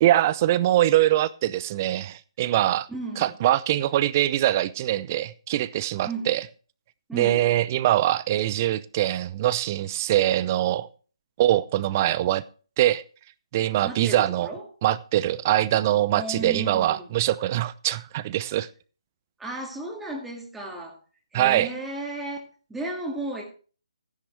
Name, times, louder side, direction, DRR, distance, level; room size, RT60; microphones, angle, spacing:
voice 1, 0.0-2.9 3.2-6.4 7.2-10.9 11.4-12.4 12.8-13.0 13.5-14.5 14.8-18.7 21.3-21.7, right 13 dB, 30° right, 0.6 m, -23 dB
voice 2, 2.9-3.3 6.0-6.3 7.1-7.4 13.8-14.6 16.1-17.1 19.4-21.0 21.3-22.4 22.7-23.4, right 2 dB, 5° right, 2.1 m, -34 dB
14.5 x 10.5 x 3.3 m
figure-of-eight pair, 145°, 3 cm